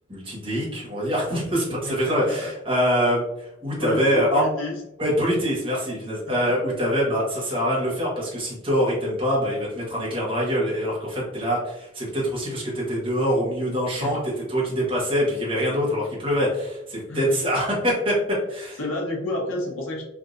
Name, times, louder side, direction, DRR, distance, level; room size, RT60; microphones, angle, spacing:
voice 1, 0.1-4.4 5.0-14.2 14.5-18.8, equal, 25° right, -5 dB, 1.1 m, -24 dB
voice 2, 1.8-2.5 3.8-4.8 6.3-6.5 14.0-14.2 17.1-17.4 18.8-20.0, left 2 dB, 85° left, -2 dB, 0.9 m, -30 dB
3.4 x 2.7 x 2.5 m, 0.85 s
head